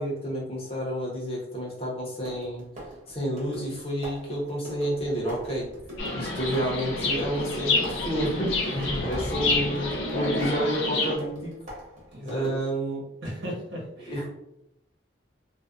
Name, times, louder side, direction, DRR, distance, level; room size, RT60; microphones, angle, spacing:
voice 1, 0.0-2.6 3.1-5.7 6.1-8.5 9.0-11.5 12.3-13.0 14.1-14.3, right 1 dB, 30° left, -4 dB, 0.7 m, -29 dB
sound 1, 0.5-0.7 2.2-12.8, equal, 35° right, 0.7 m, -42 dB
sound 2, 4.9-11.5, equal, 5° right, 0.5 m, -42 dB
Chirp tweet, 6.0-11.1, left 3 dB, 75° left, 0.5 m, -28 dB
voice 2, 8.7-9.1 12.1-12.5 13.2-14.3, equal, 70° right, -4 dB, 1.0 m, -35 dB
2.5 x 2.1 x 2.3 m, 0.82 s
head